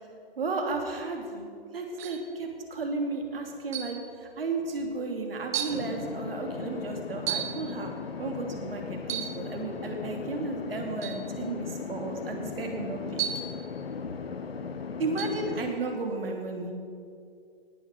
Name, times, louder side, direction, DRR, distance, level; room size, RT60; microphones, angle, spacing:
voice 1, 0.4-7.9 8.2-13.2 15.0-16.7, right 3 dB, 70° right, 3 dB, 2.9 m, -33 dB
sound 1, 2.0-2.3 3.7-4.1 4.8-4.9 5.5-5.8 7.3-7.6 9.0-9.4 11.0-11.3 13.2-13.6 15.2-15.4, right 10 dB, 10° right, 0.4 m, -33 dB
sound 2, 5.7-15.7, left 5 dB, 80° left, 1.1 m, -37 dB
18.5 x 7.2 x 6.6 m, 2.3 s
hypercardioid pair, 140°, 30 cm